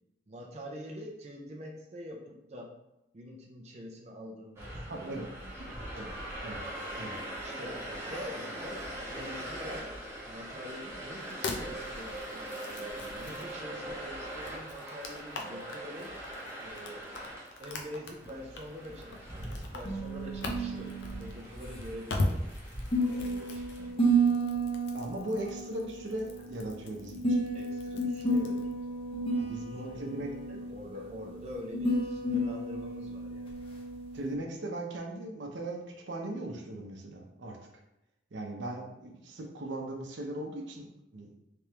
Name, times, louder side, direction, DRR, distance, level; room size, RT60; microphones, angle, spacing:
voice 1, 0.3-2.7 3.1-6.3 7.4-9.9 10.2-16.1 16.6-17.1 17.6-22.5 23.1-24.3 27.5-28.9 29.3-33.5, equal, 35° right, -1 dB, 0.5 m, -45 dB
sound 1, 4.6-23.9, right 1 dB, 15° right, 0.9 m, -42 dB
voice 2, 4.9-5.3 5.9-6.1 6.4-6.6 7.0-7.1 24.9-27.4 29.4-30.6 34.1-37.6 38.3-40.9 41.1-41.3, right 1 dB, 90° right, 1 dB, 0.7 m, -38 dB
sound 2, 11.2-13.6 14.3-28.7, left 2 dB, 80° left, 0.6 m, -40 dB
sound 3, 18.2-34.3, right 2 dB, 30° left, 0.9 m, -32 dB
3.4 x 3.4 x 2.9 m, 0.87 s
head